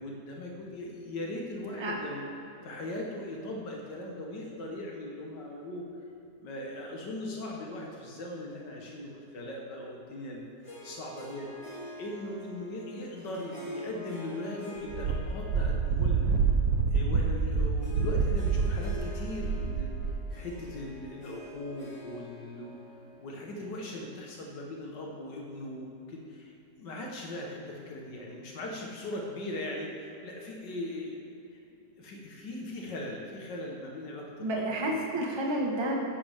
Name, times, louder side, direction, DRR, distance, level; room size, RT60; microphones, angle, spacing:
voice 1, 0.0-2.3 2.6-5.9 6.4-10.5 10.8-11.5 12.0-16.3 16.9-19.9 20.3-22.8 23.2-26.5 26.8-31.2 32.0-35.0, left 1 dB, 80° left, -1 dB, 1.8 m, -39 dB
Harp, 10.6-24.3, equal, 20° left, 1.8 m, -48 dB
Wind, 14.9-20.2, right 5 dB, 60° right, 1.2 m, -27 dB
voice 2, 34.4-36.0, right 1 dB, 15° right, -1 dB, 1.2 m, -30 dB
14.5 x 10.5 x 3.5 m, 3.0 s
omnidirectional pair, 1.9 m